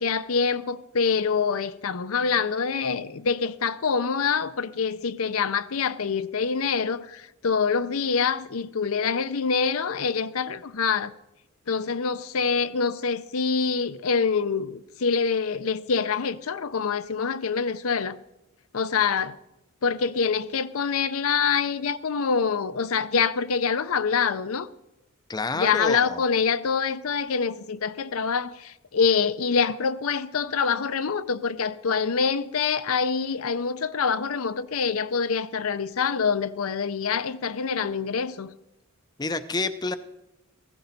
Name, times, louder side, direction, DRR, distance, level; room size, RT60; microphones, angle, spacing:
voice 1, 0.0-11.1 11.7-18.2 18.7-19.4 19.8-24.7 25.5-38.5, left 5 dB, 75° left, 0.6 m, -25 dB
voice 2, 25.3-26.2 39.2-40.0, left 3 dB, 20° left, 0.5 m, -28 dB
15.5 x 15.0 x 4.1 m
head